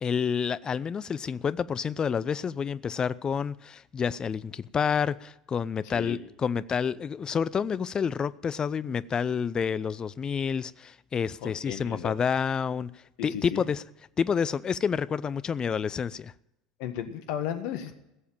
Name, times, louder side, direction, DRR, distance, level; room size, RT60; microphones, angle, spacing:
voice 1, 0.0-13.8 14.2-16.3, left 6 dB, 25° left, 17 dB, 0.5 m, -29 dB
voice 2, 5.8-6.2 11.4-12.1 13.2-13.6 16.8-17.9, left 10 dB, 55° left, 8 dB, 1.6 m, -35 dB
17.0 x 7.1 x 8.9 m, 0.87 s
figure-of-eight pair, 70°, 3 cm